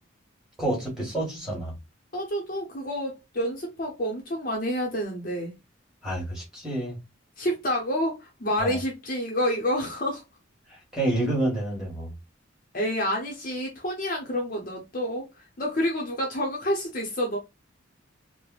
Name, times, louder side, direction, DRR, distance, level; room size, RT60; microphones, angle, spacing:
voice 1, 0.6-1.8 6.0-7.0 8.6-8.8 10.9-12.1, right 1 dB, ahead, 1.4 m, -28 dB
voice 2, 2.1-5.5 7.4-10.2 12.7-15.3 15.6-17.4, equal, 40° left, 0.7 m, -28 dB
3.2 x 2.1 x 2.3 m
head